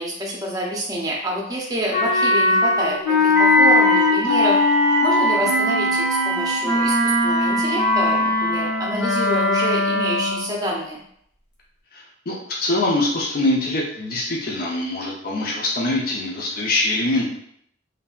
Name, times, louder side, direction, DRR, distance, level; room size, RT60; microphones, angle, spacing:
voice 1, 0.0-4.6 5.0-11.0, equal, 20° right, -3 dB, 0.6 m, -27 dB
Wind instrument woodwind instrument, 1.9-10.5, left 3 dB, 70° left, 1.4 m, -20 dB
Wind instrument woodwind instrument 2, 3.3-9.8, right 3 dB, 60° right, 0.3 m, -23 dB
voice 2, 11.9-17.3, left 2 dB, 50° left, -3 dB, 0.6 m, -23 dB
3.2 x 2.6 x 2.3 m, 0.68 s
head